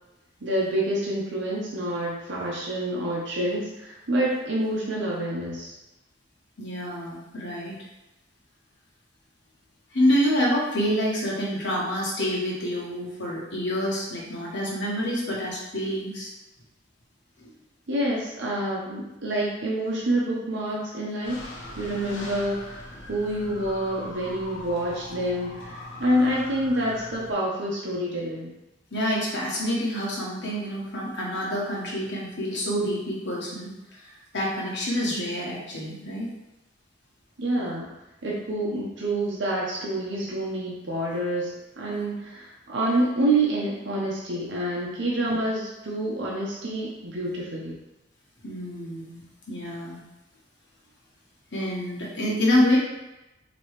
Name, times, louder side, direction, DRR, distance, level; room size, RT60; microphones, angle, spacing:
voice 1, 0.4-5.8 17.9-21.4 21.7-22.8 23.1-28.5 37.4-37.9 38.2-47.8, right 1 dB, 70° right, -4 dB, 0.8 m, -27 dB
voice 2, 6.6-7.8 9.9-16.3 17.4-17.5 28.9-33.7 34.3-36.3 48.4-49.2 49.5-50.0 51.5-52.8, equal, 70° left, -4 dB, 1.2 m, -27 dB
sound 1, 21.2-27.3, left 1 dB, 90° left, 0.9 m, -40 dB
4.3 x 3.0 x 3.2 m, 0.96 s
head